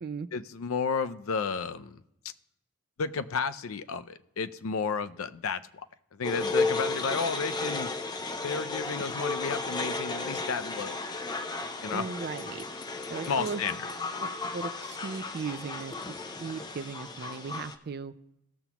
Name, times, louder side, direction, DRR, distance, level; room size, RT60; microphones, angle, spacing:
voice 1, 0.3-2.0 3.0-5.9 6.1-7.9 8.4-11.0 11.8-12.0 13.3-13.9, left 5 dB, 80° left, 12 dB, 0.5 m, -32 dB
sound 1, 6.2-17.7, left 3 dB, 20° left, 0.5 m, -34 dB
voice 2, 11.9-12.6 13.1-13.6 14.2-15.9 16.4-18.1, right 5 dB, 45° right, 12 dB, 0.4 m, -37 dB
17.0 x 7.0 x 2.9 m, 0.82 s
head